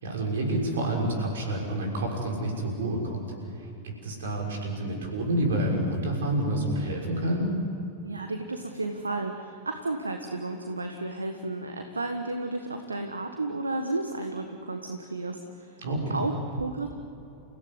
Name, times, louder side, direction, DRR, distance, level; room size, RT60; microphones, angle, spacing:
voice 1, 0.0-3.2 4.0-7.6 15.8-16.2, right 1 dB, 65° right, 0 dB, 6.3 m, -28 dB
voice 2, 8.0-15.7 16.1-16.9, right 2 dB, 80° right, 5 dB, 1.5 m, -32 dB
29.5 x 16.5 x 9.7 m, 2.9 s
figure-of-eight pair, 90°, 0 cm